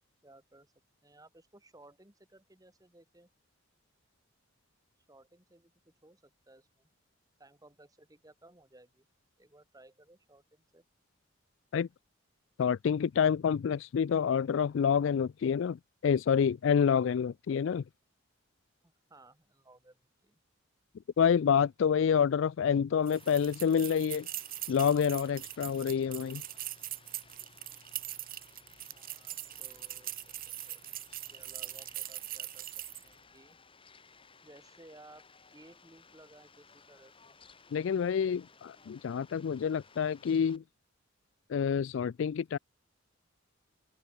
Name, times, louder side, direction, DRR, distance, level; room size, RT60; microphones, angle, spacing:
voice 1, 0.2-0.7 1.0-3.3 5.1-6.9 7.4-9.1 9.4-10.8 18.8-20.4 28.9-30.8 31.1-32.7 33.0-33.6 34.4-35.2 35.5-37.4, right 2 dB, 20° right, 2.2 m, -59 dB
voice 2, 12.6-17.8 21.2-24.3 24.7-26.4 37.7-40.6 41.5-42.6, left 7 dB, 65° left, 0.3 m, -28 dB
Fowl, 23.1-40.6, left 5 dB, 25° left, 3.6 m, -60 dB
sound 1, 23.1-33.1, right 14 dB, 45° right, 1.5 m, -42 dB
open air
head